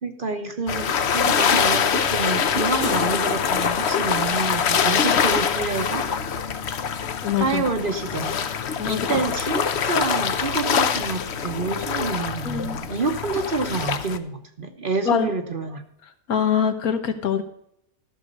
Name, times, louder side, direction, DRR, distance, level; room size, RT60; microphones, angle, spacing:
voice 1, 0.0-6.1 7.4-8.4 8.8-15.8, right 4 dB, 40° right, 6 dB, 1.0 m, -28 dB
sound 1, 0.7-14.2, left 7 dB, 55° left, 0.9 m, -24 dB
voice 2, 7.2-7.6 8.8-9.1 12.4-12.8 15.0-15.3 16.3-17.4, left 7 dB, 75° left, 8 dB, 1.6 m, -23 dB
14.0 x 6.4 x 5.2 m, 0.74 s
omnidirectional pair, 1.5 m